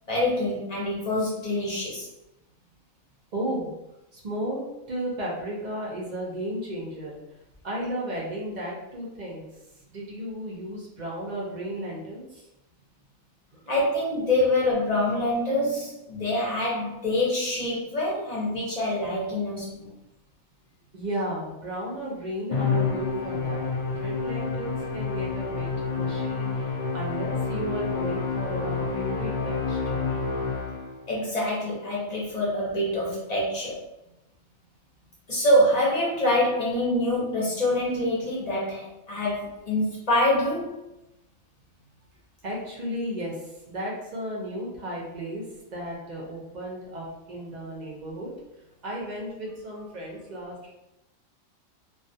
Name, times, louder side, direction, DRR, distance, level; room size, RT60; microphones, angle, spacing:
voice 1, 0.1-2.1 13.7-19.9 31.1-33.8 35.3-40.8, left 1 dB, 40° left, -6 dB, 0.6 m, -25 dB
voice 2, 3.3-3.7 4.1-7.2 7.6-9.5 9.9-12.5 20.9-30.2 42.4-45.4 45.7-48.3 48.8-50.7, equal, 55° right, -4 dB, 0.5 m, -34 dB
Musical instrument, 22.5-31.1, left 4 dB, 85° left, 0.4 m, -28 dB
2.3 x 2.3 x 2.6 m, 0.92 s
omnidirectional pair, 1.4 m